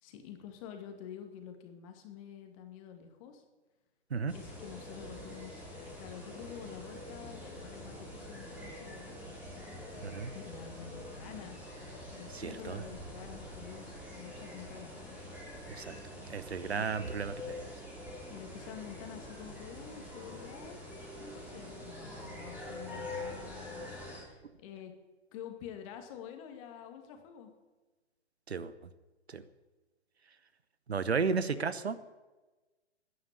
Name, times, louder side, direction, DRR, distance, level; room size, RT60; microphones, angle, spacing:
voice 1, 0.0-3.4 4.3-10.0 10.3-11.8 12.1-15.0 16.7-16.9 18.3-20.8 21.1-24.9 25.3-27.5 31.0-31.6, left 9 dB, 30° left, 6 dB, 2.2 m, -48 dB
sound 1, 4.3-24.2, left 1 dB, 5° right, 4.4 m, -45 dB
voice 2, 12.3-12.8 15.8-15.9 16.3-17.7 28.5-28.7 29.3-29.4 30.9-32.0, right 5 dB, 70° right, 14 dB, 1.0 m, -33 dB
13.0 x 9.9 x 9.5 m, 1.2 s
figure-of-eight pair, 120°, 34 cm